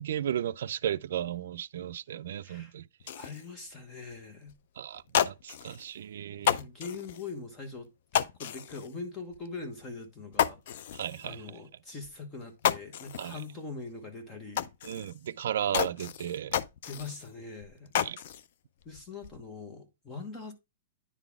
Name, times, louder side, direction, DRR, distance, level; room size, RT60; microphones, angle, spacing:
voice 1, 0.0-2.8 4.8-6.6 10.9-11.4 13.2-13.4 14.8-16.6 18.0-18.2, right 10 dB, 55° right, 0.4 m, -34 dB
sound 1, 3.0-3.5 4.1-4.2 4.5-4.6 5.0-5.9 6.4-7.3 8.1-8.9 9.3-9.5 9.8-9.9 10.3-11.3 12.0-12.1 12.4-13.5 13.8-13.9 14.6-15.3 15.7-17.3 17.6-18.5 18.8-19.4, left 9 dB, 45° left, 0.4 m, -31 dB
voice 2, 3.1-4.5 6.5-7.9 8.1-10.9 11.2-14.7 16.8-17.9 18.8-20.5, left 4 dB, 15° left, 1.1 m, -42 dB
9.7 x 4.0 x 3.5 m
hypercardioid pair, 175°, 0 cm